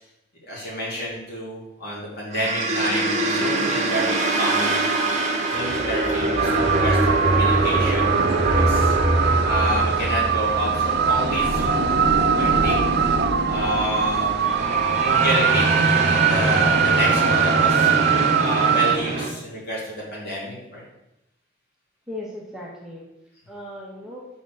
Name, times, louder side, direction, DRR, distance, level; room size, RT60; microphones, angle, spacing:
voice 1, 0.5-5.1 5.5-8.2 8.5-8.9 9.4-12.8 13.5-14.5 14.9-17.9 18.4-20.8, equal, 55° left, -5 dB, 3.1 m, -29 dB
sound 1, 2.3-19.3, right 2 dB, 40° right, 1.2 m, -23 dB
sound 2, 6.4-19.0, right 8 dB, 55° right, 0.4 m, -22 dB
voice 2, 22.1-23.0 23.5-24.3, left 1 dB, 5° right, -4 dB, 1.2 m, -37 dB
5.5 x 5.0 x 6.2 m, 0.87 s
head